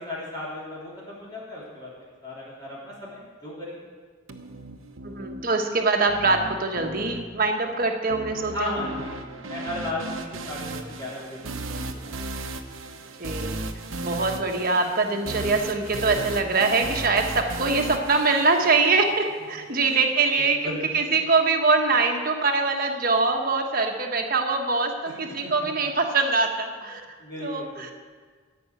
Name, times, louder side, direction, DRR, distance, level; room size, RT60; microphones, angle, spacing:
voice 1, 0.0-1.9 2.2-3.8 8.5-12.1 19.8-20.0 20.4-21.2 25.0-25.1 25.4-25.9 27.2-27.9, left 1 dB, 20° left, -8 dB, 3.3 m, -36 dB
sound 1, 4.3-19.3, right 2 dB, 90° right, 0.9 m, -36 dB
voice 2, 5.0-8.8 13.2-13.6 14.0-27.0 27.4-27.9, right 3 dB, 45° right, 3 dB, 1.3 m, -23 dB
13.5 x 5.5 x 9.0 m, 1.5 s
head